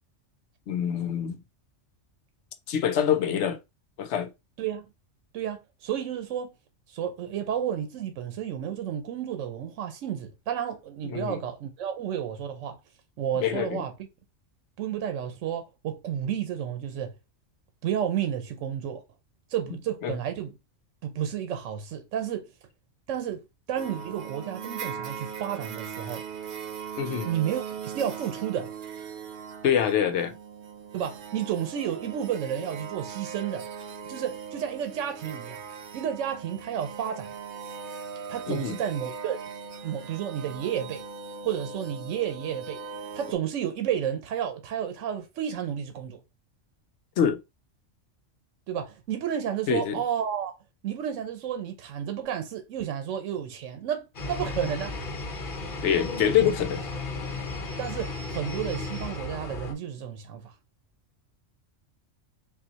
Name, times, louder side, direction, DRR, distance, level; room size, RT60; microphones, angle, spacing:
voice 1, 0.7-1.4 2.7-3.6 4.0-4.3 11.0-11.4 13.4-13.8 20.0-20.1 27.0-27.3 29.6-30.3 38.5-38.8 47.2-47.4 49.7-50.0 55.8-56.9, left 9 dB, 70° left, 0.9 m, -25 dB
voice 2, 4.6-4.9 5.3-6.5 6.9-12.8 13.2-14.1 14.8-17.1 17.8-19.0 19.5-20.5 21.0-22.5 23.1-26.2 27.3-28.7 30.9-33.7 34.1-35.6 35.9-37.3 38.3-39.4 39.8-41.0 41.4-42.8 43.1-46.2 48.7-50.5 50.8-54.9 57.8-60.5, right 9 dB, 85° right, 1.0 m, -31 dB
sound 1, 23.8-43.3, right 6 dB, 60° right, 0.6 m, -40 dB
sound 2, 54.1-59.7, left 3 dB, 45° left, 1.0 m, -34 dB
5.5 x 2.4 x 2.8 m
omnidirectional pair, 1.3 m